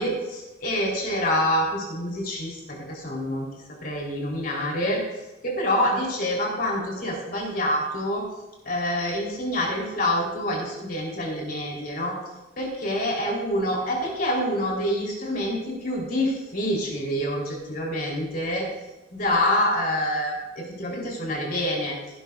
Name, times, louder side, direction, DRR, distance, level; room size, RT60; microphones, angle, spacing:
voice 1, 0.0-5.0 5.4-8.2 8.6-12.1 12.6-18.7 19.1-21.9, left 1 dB, 50° left, -2 dB, 3.5 m, -26 dB
17.5 x 11.5 x 2.4 m, 1.1 s
head